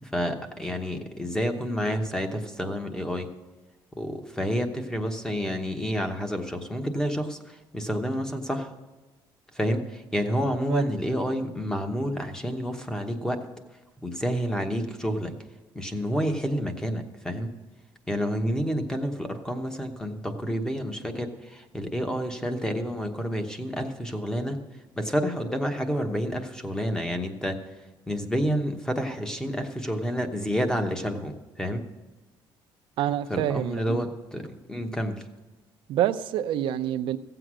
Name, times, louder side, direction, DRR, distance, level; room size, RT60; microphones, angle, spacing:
voice 1, 0.0-3.3 4.0-8.7 9.5-13.4 14.0-15.3 15.7-17.5 18.1-24.6 25.0-27.6 28.1-31.8 33.3-35.2, equal, 5° left, 1.0 m, -29 dB
voice 2, 33.0-34.1 35.9-37.2, right 11 dB, 65° right, 0.6 m, -27 dB
15.5 x 7.8 x 6.2 m
cardioid pair, 165°, 9 cm